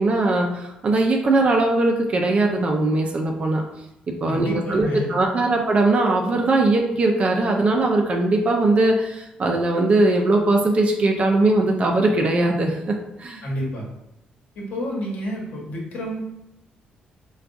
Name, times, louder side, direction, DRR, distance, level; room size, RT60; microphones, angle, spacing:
voice 1, 0.0-3.6 4.1-13.4, right 2 dB, 45° right, 2 dB, 0.4 m, -20 dB
voice 2, 4.2-5.1 13.4-13.8 14.5-16.2, equal, 75° left, -3 dB, 1.0 m, -29 dB
3.5 x 2.3 x 2.5 m, 0.90 s
cardioid pair, 100°, 3 cm